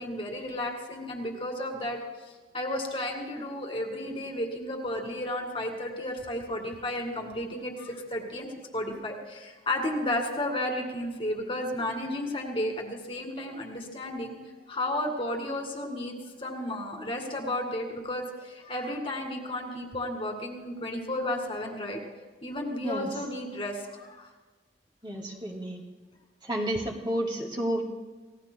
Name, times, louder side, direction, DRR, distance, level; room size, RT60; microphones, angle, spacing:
voice 1, 0.0-2.0 2.5-8.5 8.7-14.4 14.7-22.0 22.4-24.3, left 1 dB, 30° left, 2 dB, 2.2 m, -33 dB
voice 2, 25.0-25.8 26.5-27.8, right 1 dB, 25° right, 0 dB, 2.2 m, -31 dB
30.0 x 17.5 x 2.3 m, 1.3 s
head